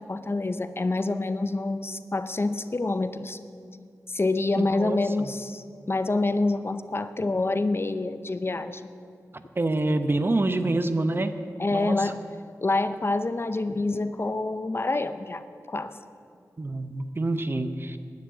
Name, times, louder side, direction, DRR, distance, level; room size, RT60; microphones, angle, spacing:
voice 1, 0.0-3.4 4.1-8.9 11.6-12.2 12.6-16.0, left 2 dB, 40° left, 11 dB, 0.6 m, -27 dB
voice 2, 4.6-5.3 9.6-11.3 11.7-12.1 16.6-18.0, right 2 dB, 35° right, 9 dB, 0.8 m, -27 dB
10.5 x 10.5 x 8.3 m, 2.3 s
wide cardioid pair, 75°, 6 cm